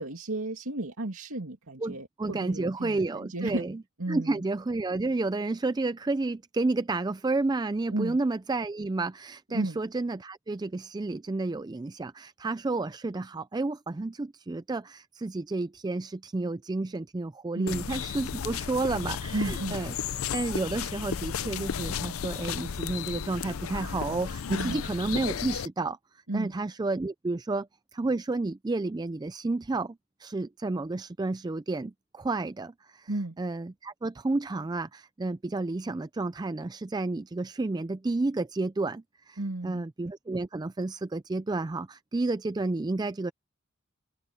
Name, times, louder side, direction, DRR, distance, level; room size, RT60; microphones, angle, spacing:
voice 1, 0.0-3.6 4.0-4.4 7.9-8.2 9.5-9.8 17.5-17.9 19.3-19.8 24.5-24.9 26.3-26.5 33.1-33.4 39.4-39.8, right 2 dB, 80° right, 2.6 m, -33 dB
voice 2, 1.8-3.8 4.1-19.9 20.3-26.0 26.3-33.1 33.4-43.3, right 2 dB, 20° right, 0.3 m, -31 dB
sound 1, 17.7-25.7, left 7 dB, 80° left, 0.5 m, -34 dB
open air
head